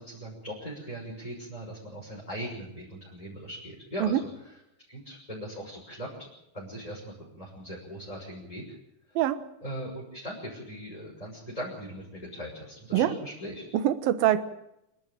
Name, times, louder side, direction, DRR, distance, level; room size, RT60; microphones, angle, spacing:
voice 1, 0.0-4.5 4.9-8.8 9.1-9.2 9.6-13.6, equal, 10° left, -5 dB, 6.1 m, -40 dB
voice 2, 13.7-14.4, right 12 dB, 85° right, 12 dB, 3.0 m, -24 dB
27.5 x 12.0 x 9.1 m, 0.83 s
omnidirectional pair, 4.0 m